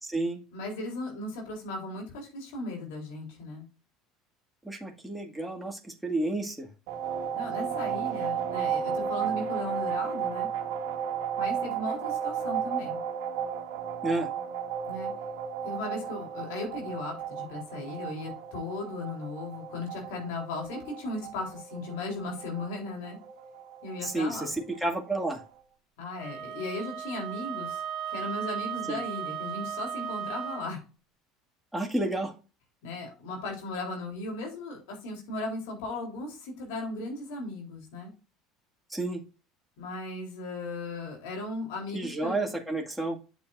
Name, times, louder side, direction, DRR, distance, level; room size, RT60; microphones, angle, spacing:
voice 1, 0.0-0.4 4.6-6.7 14.0-14.3 24.0-25.4 28.9-29.0 31.7-32.3 38.9-39.2 41.9-43.2, right 2 dB, 5° right, 1 dB, 2.1 m, -31 dB
voice 2, 0.5-3.7 7.3-10.5 11.4-13.0 14.9-15.1 15.6-23.2 23.8-24.5 26.0-27.8 28.1-30.8 32.8-38.1 39.8-42.4, left 2 dB, 75° left, 0 dB, 3.6 m, -37 dB
sound 1, 6.9-25.5, right 7 dB, 70° right, 1.5 m, -34 dB
Wind instrument woodwind instrument, 26.2-30.7, right 9 dB, 45° right, 3.0 m, -36 dB
8.4 x 7.3 x 2.6 m, 0.33 s
hypercardioid pair, 75°, 0 cm